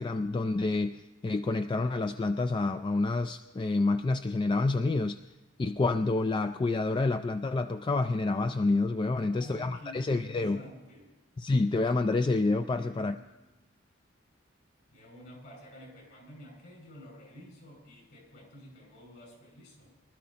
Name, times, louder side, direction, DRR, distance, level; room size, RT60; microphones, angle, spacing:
voice 1, 0.0-5.2 5.6-10.7 11.4-13.2, left 3 dB, 25° left, 9 dB, 0.3 m, -28 dB
voice 2, 9.2-11.1 12.7-13.3 14.9-20.0, left 1 dB, 60° left, 0 dB, 6.1 m, -50 dB
24.0 x 13.0 x 2.9 m, 1.1 s
head